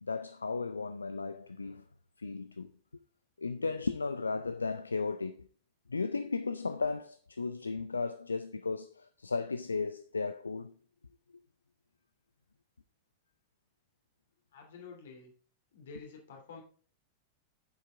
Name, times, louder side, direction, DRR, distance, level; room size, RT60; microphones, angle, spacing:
voice 1, 0.0-1.8 2.2-2.7 3.4-5.5 5.9-10.7, left 4 dB, 75° left, 0.4 m, -35 dB
voice 2, 14.5-15.3 15.7-16.6, left 5 dB, 60° left, 2.8 m, -49 dB
9.3 x 7.3 x 3.5 m
figure-of-eight pair, 90°, 0 cm